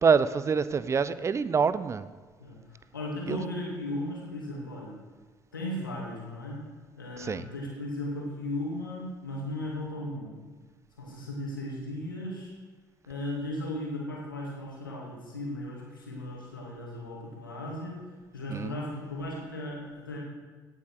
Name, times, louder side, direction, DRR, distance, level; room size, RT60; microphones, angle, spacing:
voice 1, 0.0-2.0 3.3-3.4 7.2-7.5 18.5-18.7, right 5 dB, 25° right, 16 dB, 0.6 m, -25 dB
voice 2, 2.4-5.0 5.5-6.6 7.0-10.4 11.0-12.5 13.1-18.0 18.3-20.2, left 1 dB, 80° left, -3 dB, 2.5 m, -36 dB
17.5 x 7.8 x 4.8 m, 1.5 s
figure-of-eight pair, 55°, 11 cm